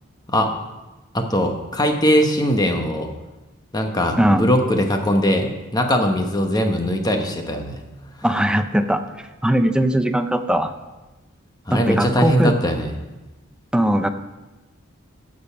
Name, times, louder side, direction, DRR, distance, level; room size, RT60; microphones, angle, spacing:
voice 1, 1.1-3.1 3.7-7.8 11.7-12.9, equal, 20° left, 4 dB, 1.1 m, -20 dB
voice 2, 8.2-9.0 9.4-10.7 11.7-12.6 13.7-14.1, right 1 dB, 5° right, 8 dB, 0.5 m, -19 dB
15.0 x 5.2 x 5.8 m, 1.1 s
head